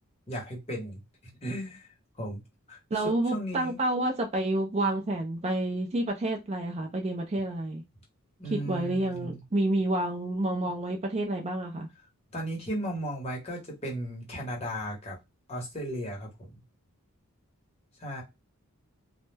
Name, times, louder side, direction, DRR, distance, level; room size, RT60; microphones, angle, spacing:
voice 1, 0.3-1.0 1.4-1.9 2.1-2.4 2.7-3.8 8.4-9.4 12.3-15.2 15.5-16.6 18.0-18.2, equal, 30° left, 0.9 m, -35 dB
voice 2, 2.9-7.8 8.5-11.9, right 1 dB, 30° right, 0.4 m, -29 dB
2.1 x 2.1 x 3.2 m
head